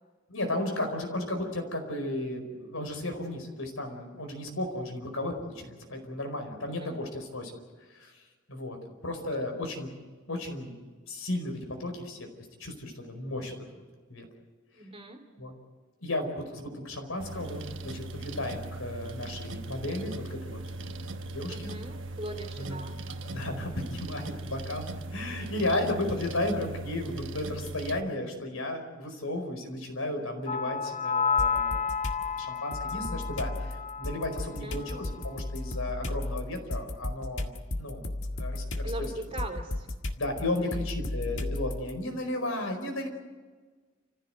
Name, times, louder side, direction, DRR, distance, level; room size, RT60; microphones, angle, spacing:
voice 1, 0.3-7.6 7.9-8.2 8.5-8.8 9.0-9.9 10.3-10.7 11.1-12.3 12.6-13.5 14.1-14.3 15.4-15.5 16.0-21.7 22.6-22.7 23.2-31.9 32.4-37.5 37.8-38.0 38.4-39.1 40.2-43.1, left 1 dB, 90° left, 4 dB, 4.8 m, -34 dB
voice 2, 6.7-7.0 8.8-8.9 14.7-15.2 21.5-23.0 24.5-24.6 34.5-34.8 38.8-39.9 40.5-40.8, right 1 dB, 25° right, 4 dB, 3.0 m, -40 dB
sound 1, 17.2-28.0, right 2 dB, 60° right, 1.1 m, -39 dB
sound 2, 30.5-34.5 34.8-35.1, left 5 dB, 35° left, 0.6 m, -31 dB
sound 3, 31.4-32.2 32.7-41.9, left 1 dB, 60° left, 1.9 m, -34 dB
28.5 x 15.5 x 7.9 m, 1.4 s
head